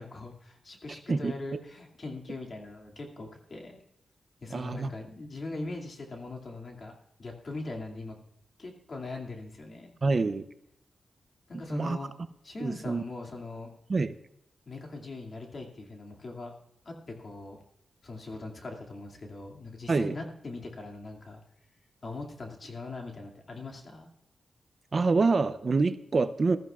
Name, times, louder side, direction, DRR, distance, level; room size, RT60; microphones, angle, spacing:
voice 1, 0.0-3.8 4.4-8.2 8.6-9.9 11.5-12.1 12.4-13.7 14.7-16.5 16.8-17.6 18.0-21.4 22.0-24.1, left 2 dB, 50° left, 1 dB, 2.4 m, -41 dB
voice 2, 4.5-4.9 10.0-10.4 11.5-12.0 12.6-13.0 13.9-14.1 19.9-20.1 24.9-26.6, right 3 dB, 50° right, 11 dB, 0.6 m, -26 dB
20.0 x 13.5 x 2.4 m, 0.77 s
cardioid pair, 70°, 0 cm